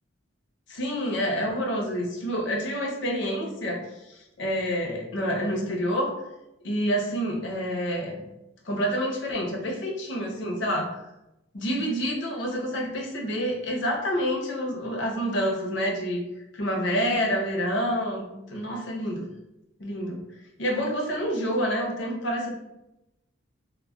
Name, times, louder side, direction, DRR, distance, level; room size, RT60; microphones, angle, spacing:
voice 1, 0.7-3.8 4.4-6.1 6.6-8.2 8.7-11.0 11.5-16.2 16.5-19.3 19.8-20.2 20.6-22.5, equal, 60° left, 0 dB, 0.6 m, -28 dB
2.2 x 2.1 x 3.6 m, 0.91 s
head